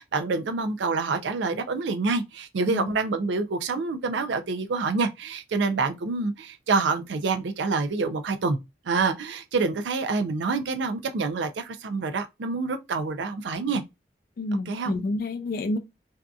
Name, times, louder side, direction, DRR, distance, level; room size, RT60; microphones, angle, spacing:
voice 1, 0.0-8.6 8.8-13.8 14.7-14.9, right 4 dB, 75° right, 0.4 m, -27 dB
voice 2, 14.4-15.8, left 2 dB, 50° left, 0.3 m, -29 dB
2.6 x 2.4 x 2.2 m
head